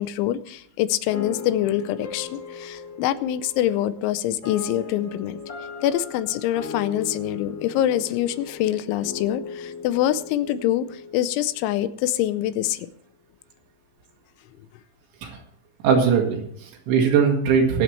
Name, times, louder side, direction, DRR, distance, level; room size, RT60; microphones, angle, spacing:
voice 1, 0.0-5.4 5.8-12.9, left 12 dB, 85° left, 13 dB, 3.0 m, -25 dB
sound 1, 1.1-12.2, left 5 dB, 50° left, 1.3 m, -38 dB
voice 2, 15.8-17.8, right 6 dB, 75° right, 1 dB, 4.3 m, -20 dB
23.5 x 8.1 x 3.2 m, 0.65 s
omnidirectional pair, 5.5 m